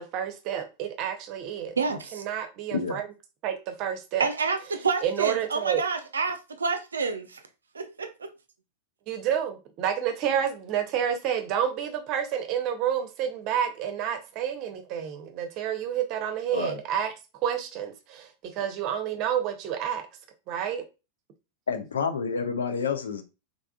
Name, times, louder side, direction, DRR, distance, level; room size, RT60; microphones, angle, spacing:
voice 1, 0.0-1.7 2.1-3.1 3.4-4.3 5.0-5.8 9.1-17.1 17.4-20.0 20.5-20.8, right 9 dB, 40° right, 0.8 m, -29 dB
voice 2, 1.8-2.2 4.2-7.4 7.7-8.3, right 4 dB, 75° right, 0.5 m, -28 dB
voice 3, 2.7-3.0 16.5-16.8 21.7-23.2, left 5 dB, 70° left, 0.6 m, -29 dB
3.6 x 3.5 x 2.4 m
figure-of-eight pair, 90°, 0 cm